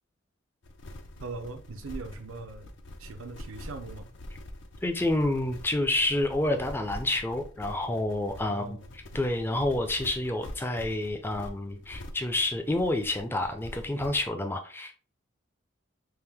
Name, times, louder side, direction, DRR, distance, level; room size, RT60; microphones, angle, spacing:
sound 1, 0.6-14.3, left 1 dB, 60° left, 0.5 m, -45 dB
voice 1, 1.2-2.7 3.0-4.1 8.5-8.9, right 3 dB, 80° right, 0.5 m, -40 dB
voice 2, 4.8-8.8 9.1-14.9, left 1 dB, 10° left, 0.4 m, -28 dB
3.5 x 2.6 x 3.4 m
head